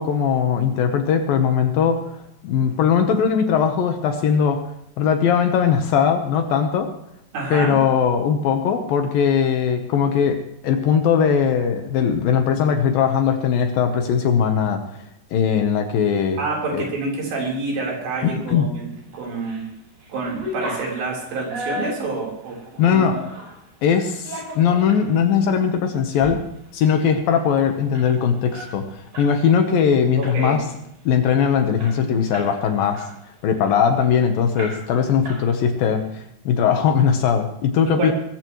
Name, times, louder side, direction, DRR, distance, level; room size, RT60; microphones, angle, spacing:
voice 1, 0.0-2.0 2.4-4.6 5.0-6.9 7.5-10.4 10.6-14.8 15.3-16.4 16.7-16.9 18.2-18.7 22.8-23.2 23.8-26.4 26.7-30.6 31.1-33.0 33.4-38.1, left 7 dB, 70° left, 6 dB, 2.5 m, -19 dB
voice 2, 7.3-7.8 16.4-18.9 19.1-19.6 20.1-22.6 22.8-23.1 30.2-30.6 38.0-38.1, right 3 dB, 80° right, -2 dB, 6.1 m, -27 dB
sound 1, 19.1-19.7 20.0-23.6 24.1-25.0 25.5-25.6 26.0-26.3 26.6-26.7 27.0-29.3 29.6-29.8 30.2-30.7 31.1-31.2 31.4-32.6 32.9-34.1 34.6-35.0 35.2-35.9, equal, 45° right, 7.0 m, -35 dB
20.5 x 15.0 x 3.1 m, 0.78 s
omnidirectional pair, 4.8 m